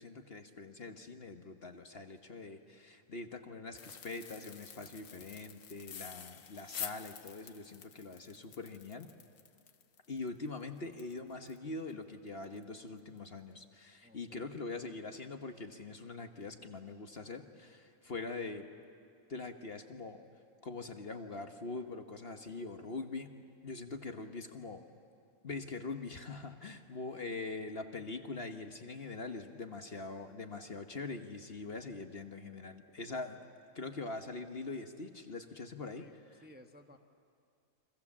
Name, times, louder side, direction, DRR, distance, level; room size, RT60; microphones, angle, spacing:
voice 1, 0.0-9.1 10.1-18.7 19.3-20.2 20.6-23.3 23.6-24.8 25.4-33.4 33.7-36.1, left 3 dB, 40° left, 6 dB, 1.2 m, -43 dB
sound 1, 3.8-11.6 11.9-12.0 12.4-12.6 13.0-13.2, left 7 dB, 60° left, 1.4 m, -48 dB
voice 2, 14.0-14.5 36.0-37.0, left 1 dB, 5° right, 4 dB, 1.0 m, -57 dB
30.0 x 24.5 x 7.3 m, 2.5 s
omnidirectional pair, 1.6 m